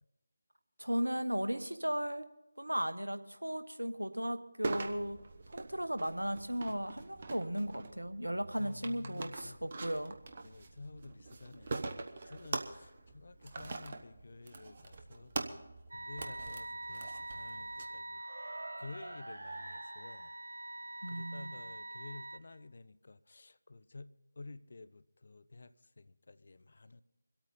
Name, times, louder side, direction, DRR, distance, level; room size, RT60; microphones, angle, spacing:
voice 1, 0.8-2.3 2.6-5.2 5.5-10.1 21.0-21.6, equal, 80° right, 10 dB, 1.1 m, -36 dB
sound 1, 4.6-17.8, right 3 dB, 35° right, 1.0 m, -43 dB
voice 2, 8.6-9.7 10.4-15.4 15.9-18.2 18.8-20.3 21.1-27.0, left 3 dB, 50° left, 14 dB, 0.5 m, -51 dB
sound 2, 15.9-22.4, right 1 dB, 60° right, 1.6 m, -44 dB
25.5 x 8.7 x 4.2 m, 0.96 s
figure-of-eight pair, 160°, 0 cm